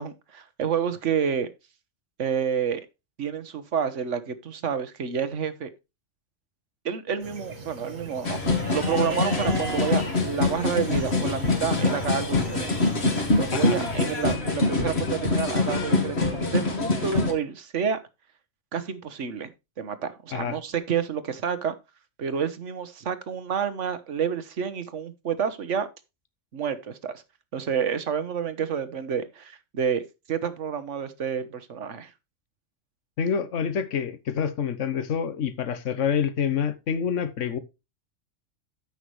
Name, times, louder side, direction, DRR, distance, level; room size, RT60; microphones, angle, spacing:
voice 1, 0.0-1.5 2.2-2.8 3.2-5.7 6.8-8.4 8.7-12.7 13.3-18.0 18.7-19.5 19.8-21.7 22.2-25.9 26.5-27.1 27.5-30.0 30.3-32.1, right 7 dB, 70° right, 1.4 m, -29 dB
sound 1, 7.2-14.4, right 2 dB, 90° right, 2.2 m, -38 dB
sound 2, 8.2-17.3, left 3 dB, 55° left, 2.1 m, -25 dB
voice 2, 33.2-37.6, left 7 dB, 70° left, 1.4 m, -27 dB
13.5 x 6.0 x 3.2 m
omnidirectional pair, 1.3 m